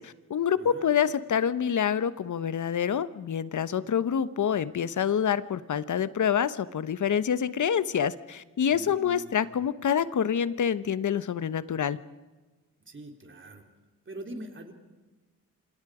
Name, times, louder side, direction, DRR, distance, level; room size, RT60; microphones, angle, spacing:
voice 1, 0.0-12.0, left 8 dB, 60° left, 15 dB, 1.1 m, -27 dB
voice 2, 0.5-0.9 8.7-9.7 12.8-13.6 14.1-14.7, right 1 dB, 35° right, 4 dB, 3.7 m, -44 dB
28.0 x 26.0 x 5.0 m, 1.2 s
cardioid pair, 95°, 33 cm